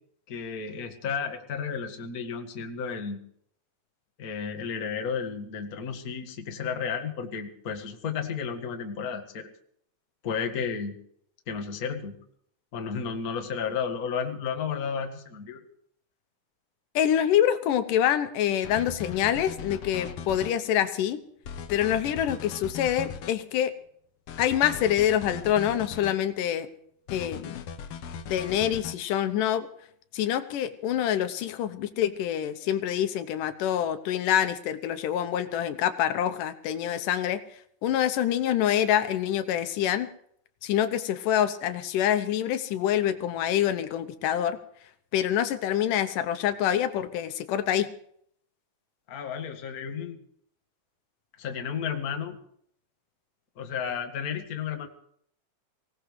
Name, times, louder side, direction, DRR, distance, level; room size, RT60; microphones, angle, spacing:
voice 1, 0.3-3.2 4.2-9.5 10.2-10.9 11.5-12.1 12.7-15.6 49.1-50.2 51.4-52.4 53.6-54.9, left 6 dB, 40° left, 4 dB, 1.5 m, -32 dB
voice 2, 17.0-21.2 21.7-23.7 24.4-26.7 27.1-27.6 28.3-29.7 30.1-37.4 37.8-40.1 40.6-44.6 45.1-47.9, left 10 dB, 85° left, 10 dB, 2.5 m, -26 dB
sound 1, 18.6-20.5 21.5-23.3 24.3-26.2 27.1-29.0, left 6 dB, 65° left, 1.5 m, -39 dB
24.5 x 17.5 x 3.3 m, 0.67 s
omnidirectional pair, 3.7 m